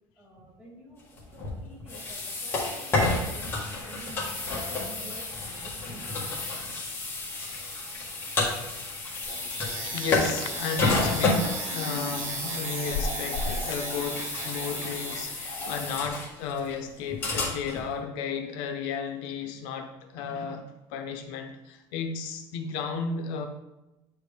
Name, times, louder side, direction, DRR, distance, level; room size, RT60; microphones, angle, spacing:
voice 1, 0.2-6.3 6.7-6.8, right 1 dB, 10° right, 2.7 m, -50 dB
sound 1, 1.2-17.9, left 2 dB, 25° left, 1.7 m, -31 dB
sound 2, 9.2-15.2, right 4 dB, 70° right, 1.6 m, -38 dB
sound 3, 9.3-14.4, left 3 dB, 50° left, 0.5 m, -37 dB
voice 2, 9.9-23.5, left 5 dB, 75° left, 0.8 m, -34 dB
8.9 x 4.7 x 3.5 m
cardioid pair, 170°, 9 cm